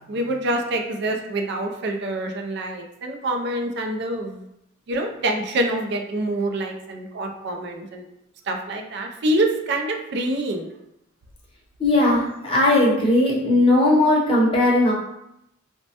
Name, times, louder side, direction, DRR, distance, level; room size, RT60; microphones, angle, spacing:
voice 1, 0.1-4.4 4.9-8.0 8.5-10.7, right 1 dB, 55° right, 4 dB, 0.4 m, -26 dB
voice 2, 11.8-14.9, left 1 dB, 25° left, -3 dB, 0.7 m, -18 dB
3.1 x 2.1 x 2.7 m, 0.83 s
head